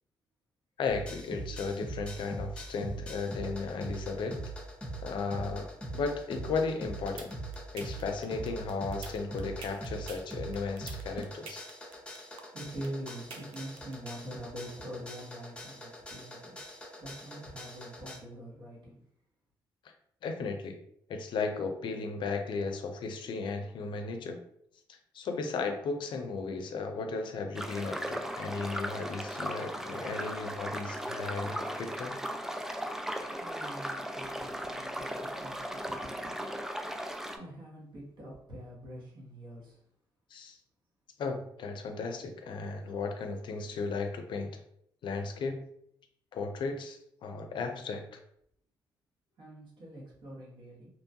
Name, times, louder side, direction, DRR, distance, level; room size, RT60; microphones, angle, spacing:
voice 1, 0.8-4.4 5.0-7.3 7.7-11.7 20.2-20.8 21.1-24.4 24.9-32.2 40.3-40.6 41.2-44.6 45.0-45.6 46.3-48.2, left 4 dB, 65° left, 5 dB, 0.4 m, -35 dB
sound 1, 0.9-18.2, right 2 dB, 10° left, 0.7 m, -42 dB
sound 2, 6.8-14.1, right 5 dB, 85° right, 0.4 m, -45 dB
voice 2, 12.5-19.0 33.4-36.5 37.3-39.8 49.4-50.9, right 1 dB, 65° right, -4 dB, 1.2 m, -44 dB
sound 3, 27.5-37.4, equal, 5° right, 0.3 m, -37 dB
2.8 x 2.2 x 2.7 m, 0.71 s
cardioid pair, 85°, 9 cm